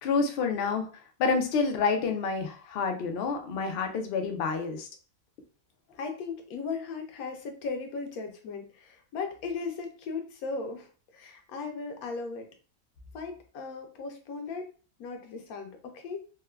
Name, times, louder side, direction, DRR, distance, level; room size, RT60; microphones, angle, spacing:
voice 1, 0.0-0.9 1.2-4.9, left 4 dB, 65° left, 4 dB, 0.6 m, -28 dB
voice 2, 6.0-12.5 13.1-14.7 15.0-16.2, left 4 dB, 90° left, 4 dB, 1.1 m, -37 dB
3.2 x 2.1 x 2.2 m, 0.38 s
omnidirectional pair, 1.5 m